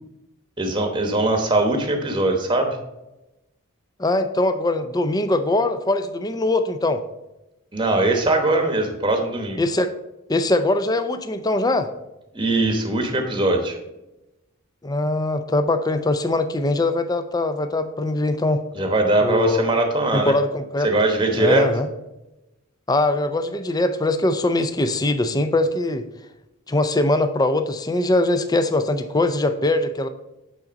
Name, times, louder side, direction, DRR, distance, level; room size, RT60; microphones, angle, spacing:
voice 1, 0.6-2.8 7.7-9.6 12.3-13.8 18.7-20.3 20.8-21.7, right 2 dB, 20° right, 4 dB, 1.0 m, -21 dB
voice 2, 4.0-7.0 9.6-9.9 10.3-11.9 14.8-18.6 19.2-19.6 20.1-20.9 21.3-21.9 22.9-26.1 26.7-30.1, left 2 dB, 20° left, 9 dB, 0.5 m, -22 dB
8.6 x 3.9 x 5.2 m, 0.96 s
head